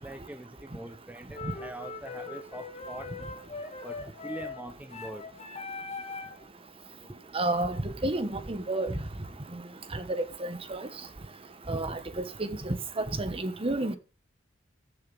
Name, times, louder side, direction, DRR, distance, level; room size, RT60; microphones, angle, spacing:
voice 1, 0.0-3.1 3.8-4.0 4.2-5.2, right 1 dB, 10° right, 0.8 m, -43 dB
sound 1, 1.3-6.4, left 3 dB, 35° left, 1.5 m, -40 dB
voice 2, 7.3-8.9 9.5-9.6 9.9-10.9 11.7-12.0 12.4-14.0, right 2 dB, 30° right, 1.1 m, -31 dB
13.5 x 7.0 x 5.2 m
head